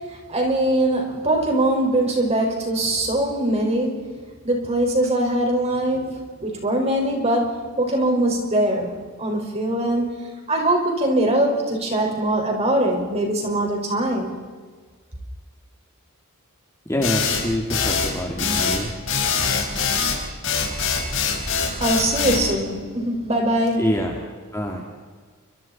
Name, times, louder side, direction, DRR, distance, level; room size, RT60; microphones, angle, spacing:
voice 1, 0.3-4.0 4.4-8.9 9.2-14.4 21.8-23.9, right 1 dB, 30° right, 1 dB, 5.5 m, -22 dB
voice 2, 16.9-18.9 23.8-24.2 24.5-24.8, equal, 15° left, 1 dB, 2.5 m, -25 dB
sound 1, 17.0-22.4, left 5 dB, 60° left, 4.9 m, -23 dB
29.5 x 25.5 x 4.4 m, 1.5 s
head